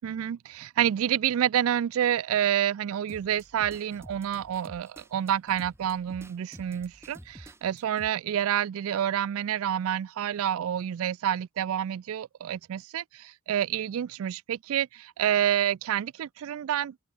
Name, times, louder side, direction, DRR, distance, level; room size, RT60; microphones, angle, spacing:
voice 1, 0.0-17.1, right 10 dB, 75° right, 0.3 m, -28 dB
sound 1, 3.1-8.1, right 1 dB, 10° right, 2.0 m, -50 dB
open air
head